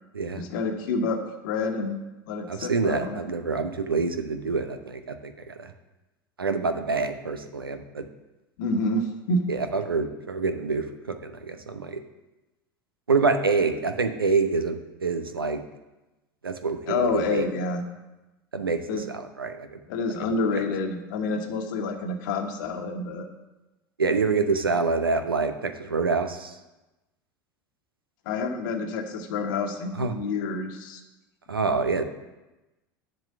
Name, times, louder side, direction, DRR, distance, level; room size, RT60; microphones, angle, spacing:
voice 1, 0.3-3.2 8.6-9.4 16.9-17.8 18.9-19.0 19.9-23.3 28.2-31.0, left 3 dB, 60° left, 5 dB, 1.3 m, -28 dB
voice 2, 2.5-5.7 6.4-8.0 9.5-12.0 13.1-15.6 16.4-17.4 18.5-19.8 24.0-26.5 30.0-30.1 31.5-32.0, right 4 dB, 85° right, 8 dB, 0.7 m, -26 dB
7.6 x 5.5 x 7.6 m, 1.0 s
figure-of-eight pair, 80°, 12 cm